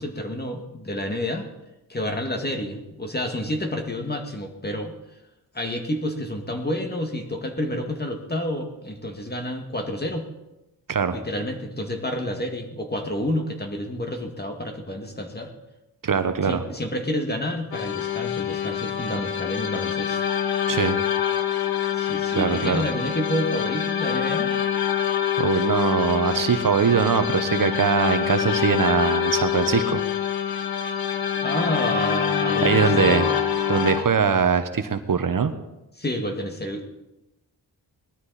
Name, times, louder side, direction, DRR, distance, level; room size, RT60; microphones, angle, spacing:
voice 1, 0.0-1.5 1.9-4.9 5.5-10.3 11.1-15.5 16.4-20.3 21.9-24.5 31.4-33.3 36.0-36.9, left 1 dB, 25° left, 3 dB, 2.0 m, -29 dB
voice 2, 16.0-16.6 20.7-21.0 22.3-22.8 25.4-30.0 32.6-33.3 33.7-35.5, right 6 dB, 55° right, 9 dB, 1.0 m, -22 dB
sound 1, 17.7-34.0, left 8 dB, 65° left, 1.6 m, -25 dB
19.5 x 13.0 x 4.2 m, 0.98 s
wide cardioid pair, 90°, 39 cm